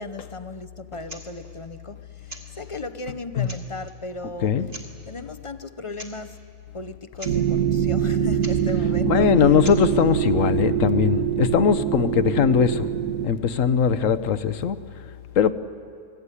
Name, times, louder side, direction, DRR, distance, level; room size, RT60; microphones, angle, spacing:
voice 1, 0.0-4.7 5.0-6.4 6.7-9.3 10.5-10.6, left 3 dB, 30° left, 0.7 m, -36 dB
sound 1, 1.0-1.3 2.2-2.5 3.1-3.2 3.4-3.9 4.7-4.9 5.9-6.1 6.4-6.5 6.9-7.0 7.1-7.4 8.4-8.6 9.6-9.8, right 1 dB, 30° right, 2.9 m, -40 dB
sound 2, 7.2-13.3, right 9 dB, 80° right, 1.6 m, -24 dB
voice 2, 9.0-12.9 13.2-14.8 15.4-15.5, left 8 dB, 70° left, 1.2 m, -20 dB
29.5 x 20.5 x 9.9 m
omnidirectional pair, 1.4 m